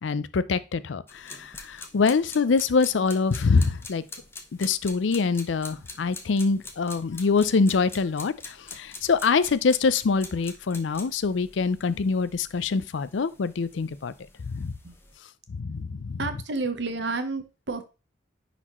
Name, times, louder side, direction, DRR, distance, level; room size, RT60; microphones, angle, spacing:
voice 1, 0.0-4.0 4.6-14.1 14.5-14.7 15.6-16.2, left 4 dB, 85° left, 0.5 m, -25 dB
sound 1, 1.1-15.2, left 3 dB, 15° left, 0.9 m, -45 dB
voice 2, 16.2-17.8, right 3 dB, 65° right, 1.0 m, -30 dB
9.9 x 4.2 x 3.0 m
head